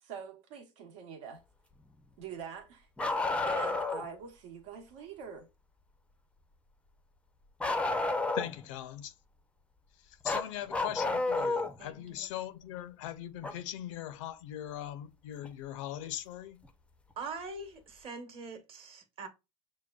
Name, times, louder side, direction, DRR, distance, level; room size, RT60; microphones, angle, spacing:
voice 1, 0.0-1.4 2.2-2.9 3.2-5.5, right 7 dB, 80° right, 1.0 m, -45 dB
Bark, 3.0-4.1 7.6-8.6 10.2-11.8 13.4-13.5 15.4-15.5 16.6-16.7, left 2 dB, 5° left, 0.4 m, -31 dB
voice 2, 8.3-9.1 10.0-16.6, left 12 dB, 80° left, 0.5 m, -40 dB
voice 3, 11.8-12.3 17.2-19.3, right 4 dB, 35° right, 1.0 m, -43 dB
6.1 x 2.2 x 2.2 m
supercardioid pair, 115°, 16 cm